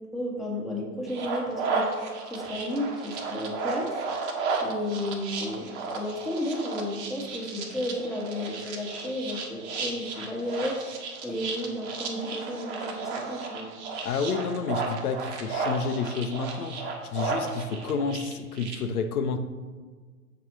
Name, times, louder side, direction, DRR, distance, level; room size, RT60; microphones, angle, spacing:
voice 1, 0.1-1.9 2.3-4.0 4.6-13.7, left 1 dB, ahead, -4 dB, 1.2 m, -33 dB
sound 1, 1.1-18.8, right 4 dB, 45° right, 1.2 m, -33 dB
voice 2, 14.0-19.4, left 5 dB, 70° left, 7 dB, 0.7 m, -30 dB
6.8 x 4.2 x 4.6 m, 1.5 s
hypercardioid pair, 110°, 47 cm